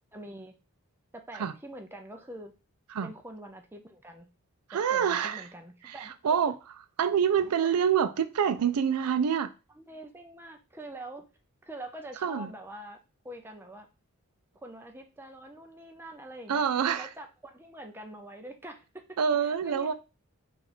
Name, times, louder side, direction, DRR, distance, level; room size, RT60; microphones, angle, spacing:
voice 1, 0.1-0.5 1.1-2.5 3.0-4.3 4.7-6.4 7.6-7.8 9.8-11.3 11.6-13.0 13.2-13.9 14.6-16.6 17.0-19.9, right 1 dB, 10° right, 0.5 m, -45 dB
voice 2, 4.7-5.4 5.8-6.0 6.2-6.5 7.0-9.5 12.2-12.5 16.5-17.1 19.2-19.9, right 7 dB, 90° right, 0.4 m, -26 dB
4.2 x 2.5 x 4.1 m
head